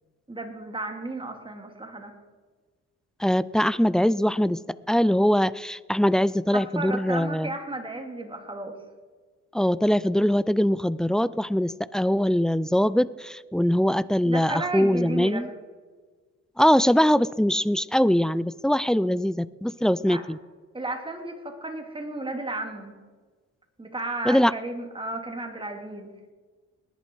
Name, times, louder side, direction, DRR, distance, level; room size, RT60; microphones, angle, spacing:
voice 1, 0.3-2.1 6.5-8.8 14.2-15.5 20.1-20.2 20.7-22.9 23.8-26.1, right 2 dB, 15° right, 4 dB, 2.7 m, -33 dB
voice 2, 3.2-4.6 4.9-7.5 9.5-15.5 16.6-20.4 24.3-24.5, equal, ahead, 19 dB, 0.3 m, -22 dB
20.0 x 11.0 x 4.6 m, 1.4 s
cardioid pair, 90°, 30 cm